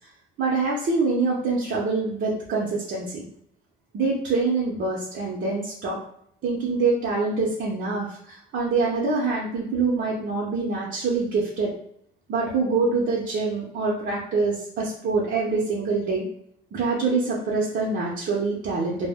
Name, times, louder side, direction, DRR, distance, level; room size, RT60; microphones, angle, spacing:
voice 1, 0.4-3.3 3.9-6.0 6.4-11.7 12.3-16.2 16.7-19.1, right 3 dB, 60° right, -4 dB, 0.6 m, -25 dB
2.1 x 2.1 x 3.4 m, 0.68 s
cardioid pair, 90°, 20 cm